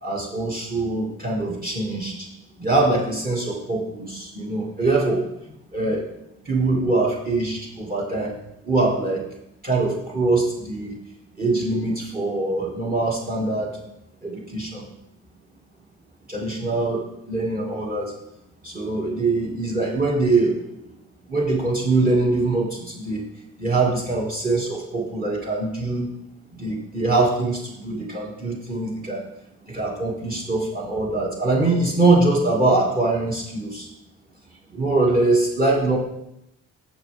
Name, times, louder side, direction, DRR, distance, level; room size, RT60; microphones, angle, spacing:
voice 1, 0.0-2.3 2.6-5.2 5.7-6.0 6.5-8.3 8.6-9.2 9.6-11.0 11.4-13.8 14.2-14.8 16.3-18.1 18.6-20.6 21.3-23.2 23.6-26.1 26.5-29.2 29.7-33.9 34.7-36.0, right 2 dB, 30° right, -1 dB, 1.9 m, -23 dB
15.0 x 5.8 x 3.4 m, 0.84 s
cardioid pair, 90°, 30 cm